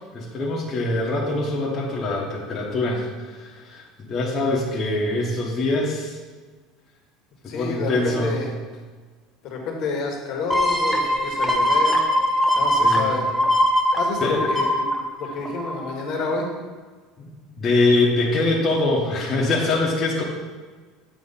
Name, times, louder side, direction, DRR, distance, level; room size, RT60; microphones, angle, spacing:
voice 1, 0.1-6.2 7.5-8.4 12.8-13.1 14.2-14.5 17.2-17.3 17.6-20.2, left 2 dB, 25° left, -5 dB, 0.9 m, -23 dB
voice 2, 7.5-8.5 9.4-12.0 12.5-13.3 14.0-14.7 15.2-16.5, left 4 dB, 45° left, 1 dB, 1.2 m, -29 dB
sound 1, 10.5-16.0 16.4-16.5, equal, 5° left, 0.6 m, -21 dB
8.0 x 3.0 x 5.5 m, 1.4 s
cardioid pair, 165°, 0 cm